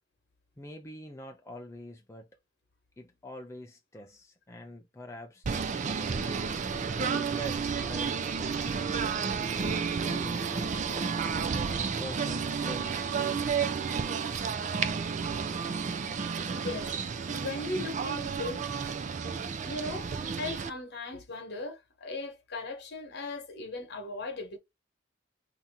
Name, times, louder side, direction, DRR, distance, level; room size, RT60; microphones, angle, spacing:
voice 1, 0.6-2.3 3.0-5.5 6.2-6.5 6.9-8.7 9.5-11.2 12.0-13.0, left 1 dB, 15° left, 0.4 m, -45 dB
Singing / Bird, 5.4-20.7, right 5 dB, 40° right, 0.4 m, -31 dB
voice 2, 16.4-18.6 19.6-24.6, left 2 dB, 60° left, 1.2 m, -38 dB
2.8 x 2.7 x 3.5 m
head